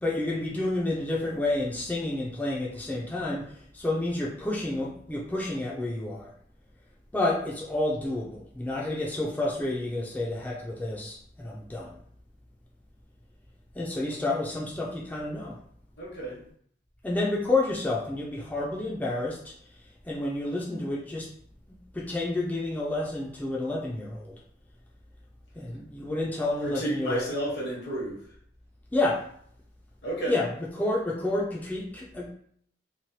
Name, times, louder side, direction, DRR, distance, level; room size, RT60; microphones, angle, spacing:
voice 1, 0.0-6.3 7.1-12.0 13.7-15.6 17.0-19.5 20.1-21.3 21.7-24.4 25.6-27.3 28.9-29.2 30.3-32.3, left 2 dB, 10° left, -4 dB, 0.3 m, -30 dB
voice 2, 16.0-16.4 26.6-28.2 30.0-30.4, right 1 dB, 70° left, -3 dB, 1.1 m, -31 dB
3.1 x 2.1 x 2.7 m, 0.63 s
head